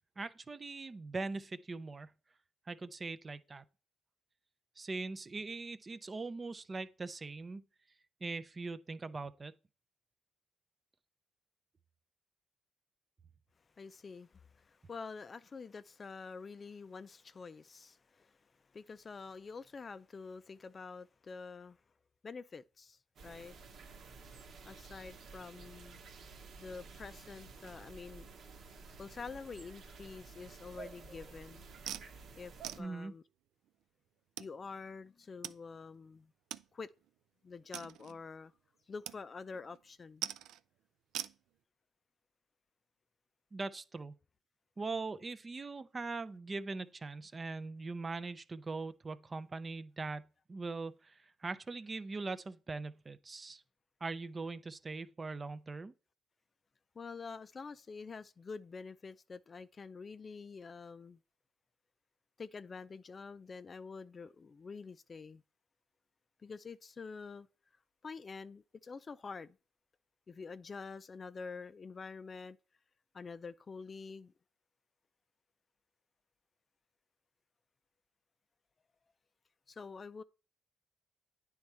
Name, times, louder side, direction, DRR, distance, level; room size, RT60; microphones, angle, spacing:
voice 1, 0.2-2.1 2.7-3.6 4.8-7.6 8.2-9.5 32.8-33.1 43.5-44.1 44.8-53.6 54.0-55.9, right 3 dB, 30° right, 0.5 m, -41 dB
voice 2, 13.8-21.8 22.2-23.6 24.7-26.0 26.6-28.3 29.0-31.7 32.4-33.2 34.4-36.3 36.7-36.9 37.4-38.5 38.9-40.3 56.9-61.2 62.4-65.4 66.4-67.5 68.0-69.6 70.3-72.6 73.1-74.3 79.7-80.2, left 4 dB, 35° left, 0.4 m, -47 dB
sound 1, 23.2-32.8, right 4 dB, 65° right, 1.3 m, -52 dB
sound 2, 31.9-32.1 32.6-32.8 33.7-33.8 34.4-34.5 35.4-35.6 35.9-36.0 36.5-36.7 37.1-37.2 37.7-38.2 39.1-39.2 39.5-39.8 40.2-40.6 41.1-41.4, right 11 dB, 85° right, 0.3 m, -42 dB
9.5 x 3.5 x 4.3 m
cardioid pair, 90°, 0 cm